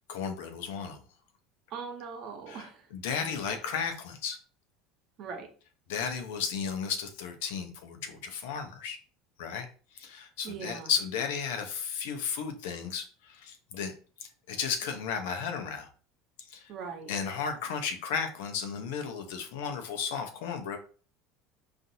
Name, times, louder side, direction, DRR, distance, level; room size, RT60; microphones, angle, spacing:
voice 1, 0.1-1.0 2.5-2.7 2.9-4.4 5.9-9.0 9.4-9.7 9.9-13.9 14.2-15.9 16.5-16.7 17.1-20.8, left 6 dB, 80° left, 6 dB, 0.7 m, -34 dB
voice 2, 1.7-2.9 3.4-3.5 5.2-5.5 10.4-10.9 16.7-17.1, right 5 dB, 55° right, 4 dB, 1.0 m, -40 dB
4.0 x 2.5 x 2.7 m, 0.39 s
supercardioid pair, 100°, 0 cm